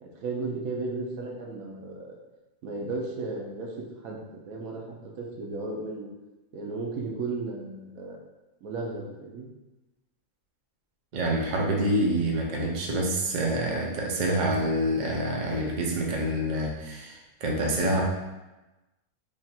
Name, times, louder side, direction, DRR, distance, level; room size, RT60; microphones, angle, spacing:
voice 1, 0.0-2.2 2.6-3.7 4.0-6.1 6.5-8.2 8.6-9.5, right 3 dB, 70° right, -1 dB, 1.1 m, -34 dB
voice 2, 11.1-18.0, right 1 dB, 50° right, -2 dB, 0.5 m, -27 dB
3.5 x 2.4 x 4.1 m, 1.1 s
omnidirectional pair, 1.6 m